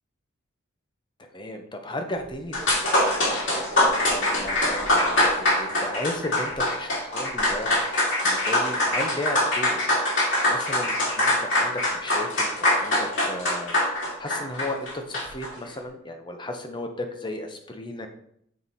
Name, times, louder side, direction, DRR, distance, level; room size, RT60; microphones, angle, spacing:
voice 1, 1.2-3.2 4.0-7.8 8.2-9.9 10.5-18.1, left 1 dB, 25° left, 5 dB, 0.8 m, -35 dB
sound 1, 2.2-2.3 2.5-15.5, left 1 dB, 65° left, 2.7 m, -23 dB
7.4 x 4.6 x 4.2 m, 0.70 s
head